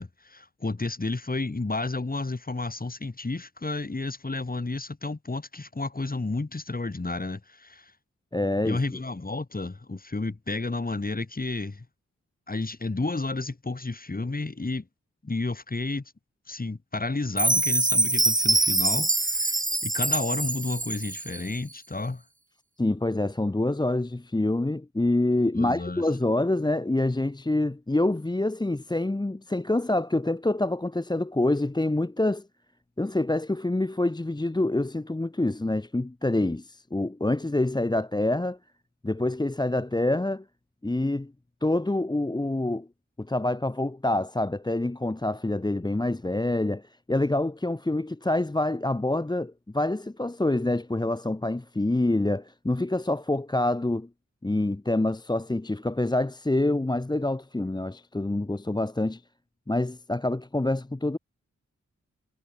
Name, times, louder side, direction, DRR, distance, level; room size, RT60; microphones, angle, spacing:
voice 1, 0.0-7.9 8.6-11.9 12.5-14.9 15.2-16.0 16.5-22.2 25.5-26.0, left 3 dB, 30° left, 2.3 m, -31 dB
voice 2, 8.3-8.8 22.8-32.5 33.0-38.6 39.0-40.4 40.8-41.3 41.6-42.9 43.2-54.1 54.4-59.2 59.7-61.2, left 2 dB, 15° left, 1.0 m, -26 dB
Chime, 17.4-21.4, right 2 dB, 25° right, 3.4 m, -24 dB
cardioid pair, 45°, 30 cm